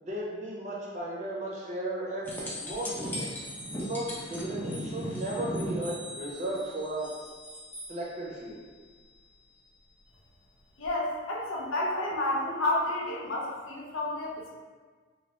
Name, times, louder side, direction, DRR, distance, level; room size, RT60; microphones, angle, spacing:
voice 1, 0.0-3.3 3.8-7.3 7.9-8.6, right 1 dB, 35° right, -4 dB, 0.6 m, -35 dB
sound 1, 2.2-7.9 10.8-10.9, equal, 10° left, 0.4 m, -37 dB
voice 2, 10.8-14.5, left 1 dB, 85° left, -3 dB, 0.7 m, -30 dB
3.2 x 2.3 x 2.9 m, 1.5 s
head